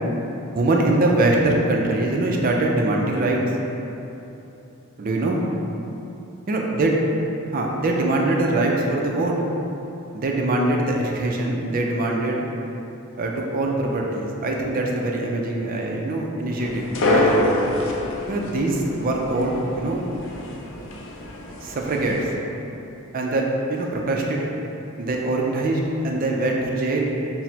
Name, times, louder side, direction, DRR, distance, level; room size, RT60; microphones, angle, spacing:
voice 1, 0.5-3.4 5.0-5.4 6.5-7.0 7.5-9.4 10.1-12.4 13.2-17.6 18.3-20.0 21.6-22.2 23.1-24.5 25.0-27.1, right 2 dB, 40° right, 0 dB, 0.4 m, -23 dB
sound 1, 16.6-22.3, left 1 dB, 60° left, 0.4 m, -26 dB
5.8 x 2.0 x 2.8 m, 2.9 s
head